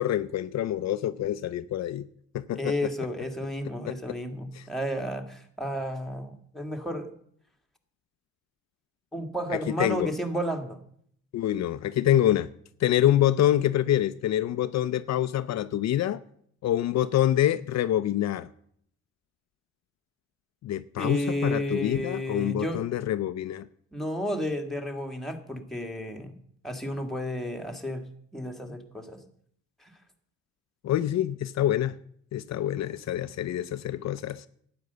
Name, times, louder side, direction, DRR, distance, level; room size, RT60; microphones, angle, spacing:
voice 1, 0.0-2.1 2.3-2.7 3.9-4.0 4.5-4.7 9.7-10.1 11.3-12.5 12.8-16.2 16.6-18.5 20.6-23.7 30.8-32.0 32.3-34.5, left 12 dB, 60° left, 0.6 m, -26 dB
voice 2, 2.6-7.1 9.1-10.8 21.0-22.8 23.9-26.3 26.6-28.0 28.3-29.2 29.8-29.9, equal, ahead, 1.9 m, -32 dB
12.0 x 9.1 x 6.8 m
cardioid pair, 90°, 30 cm